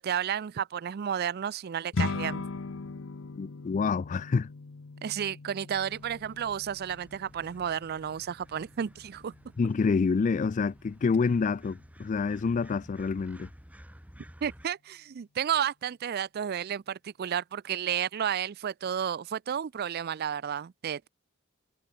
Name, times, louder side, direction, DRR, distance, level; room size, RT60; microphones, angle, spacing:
voice 1, 0.0-2.4 5.0-9.3 14.4-21.1, right 8 dB, 50° right, 0.4 m, -32 dB
sound 1, 1.9-11.4, left 3 dB, 65° left, 0.7 m, -40 dB
voice 2, 3.4-4.5 9.6-13.5, left 5 dB, 35° left, 0.3 m, -27 dB
sound 2, 5.7-14.7, equal, 5° right, 3.9 m, -54 dB
head